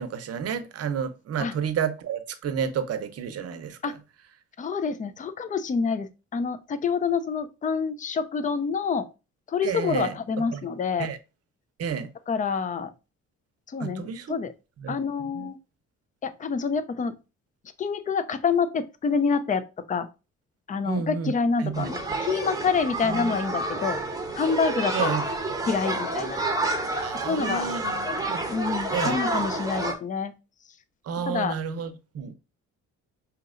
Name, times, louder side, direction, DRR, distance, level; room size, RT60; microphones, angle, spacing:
voice 1, 0.0-4.0 9.6-10.1 10.5-10.6 11.0-11.2 11.8-12.1 13.8-14.4 14.8-15.0 15.3-15.5 20.9-21.3 21.6-21.9 23.0-23.3 24.9-25.2 27.0-28.4 28.9-29.2 31.1-32.3, right 7 dB, 55° right, 0.7 m, -31 dB
voice 2, 4.6-9.1 9.5-11.1 12.3-12.9 13.7-14.5 14.9-15.6 16.2-17.2 17.8-19.6 19.9-20.1 20.7-24.0 24.3-25.2 25.7-26.4 27.3-27.7 28.5-30.3 31.2-31.6, left 5 dB, 25° left, 0.4 m, -27 dB
sound 1, 21.7-29.9, right 2 dB, 10° right, 0.9 m, -29 dB
5.1 x 2.8 x 2.4 m
cardioid pair, 90°, 30 cm